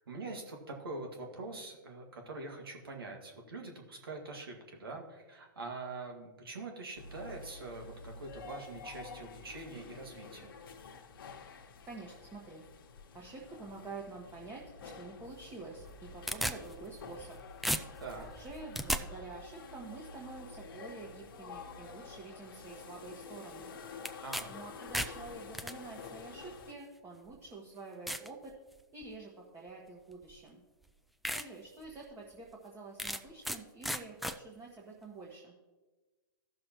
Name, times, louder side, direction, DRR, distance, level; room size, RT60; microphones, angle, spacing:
voice 1, 0.0-10.6 18.0-18.3 24.2-24.5, right 3 dB, 85° right, 2 dB, 1.9 m, -44 dB
sound 1, 7.0-26.7, left 4 dB, 70° left, 1.1 m, -49 dB
voice 2, 11.9-12.6 13.1-17.4 18.1-23.7 24.5-28.5 28.9-30.6 31.3-35.5, right 3 dB, 20° right, -2 dB, 1.4 m, -48 dB
sound 2, 15.8-17.3 17.6-19.0 24.0-24.4 24.8-25.7 26.6-26.7 27.3-27.4 28.1-28.3 28.8-29.2 30.3-30.4 30.8-30.9 31.2-31.5 31.9-32.0 33.0-33.6 33.8-34.4, equal, ahead, 0.3 m, -35 dB
15.5 x 6.4 x 2.9 m, 1.2 s
hypercardioid pair, 125°, 12 cm